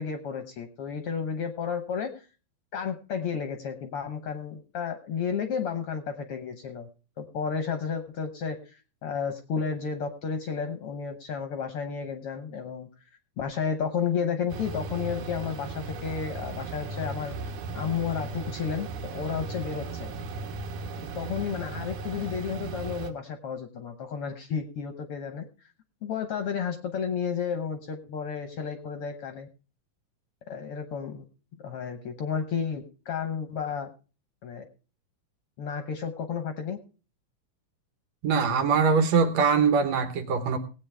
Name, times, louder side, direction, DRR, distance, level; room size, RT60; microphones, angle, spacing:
voice 1, 0.0-2.2 2.7-6.9 7.2-12.9 13.4-17.4 17.7-20.1 21.1-25.4 26.0-29.5 30.5-31.2 31.6-33.9 34.4-34.6 35.6-36.8, left 6 dB, 65° left, 7 dB, 1.5 m, -32 dB
sound 1, 14.5-23.1, right 3 dB, 90° right, 2.6 m, -36 dB
voice 2, 38.2-40.6, right 5 dB, 65° right, 8 dB, 2.2 m, -22 dB
19.0 x 8.6 x 3.3 m, 0.34 s
omnidirectional pair, 3.5 m